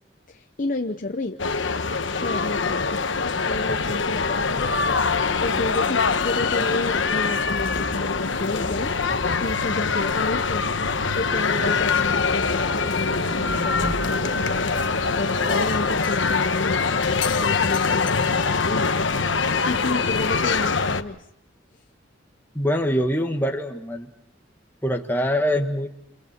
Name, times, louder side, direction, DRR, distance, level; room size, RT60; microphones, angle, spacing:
voice 1, 0.3-1.4 2.2-3.1 3.4-4.7 5.4-10.8 11.2-17.0 17.4-19.0 19.7-21.3, left 2 dB, 45° left, 6 dB, 0.9 m, -31 dB
sound 1, 1.4-21.0, left 4 dB, 75° left, 1.1 m, -23 dB
sound 2, 3.3-15.7, right 1 dB, 40° right, 1.0 m, -39 dB
sound 3, 11.2-16.1, right 4 dB, 70° right, 2.4 m, -40 dB
voice 2, 22.6-24.1 24.8-25.9, equal, 10° left, 3 dB, 1.6 m, -24 dB
29.0 x 28.0 x 4.4 m, 0.72 s
head